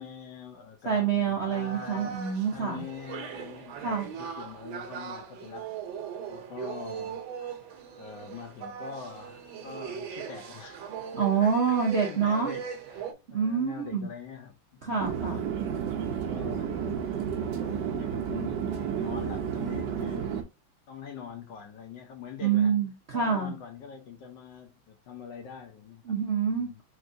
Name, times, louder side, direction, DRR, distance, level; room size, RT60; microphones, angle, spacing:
voice 1, 0.0-2.1 2.5-5.7 6.3-7.2 8.0-10.8 11.2-11.5 11.8-15.2 16.0-18.7 19.0-20.4 20.9-22.8 23.1-26.1 26.5-26.8, left 7 dB, 70° left, 1.4 m, -44 dB
voice 2, 0.9-2.8 3.8-4.1 11.1-12.6 13.3-14.1 14.8-15.4 22.4-23.5 26.1-26.7, right 6 dB, 50° right, 0.8 m, -27 dB
sound 1, 1.5-13.1, right 7 dB, 85° right, 1.5 m, -40 dB
Chatter / Fixed-wing aircraft airplane, 15.0-20.4, right 8 dB, 70° right, 1.3 m, -31 dB
4.4 x 3.2 x 2.6 m
omnidirectional pair, 2.1 m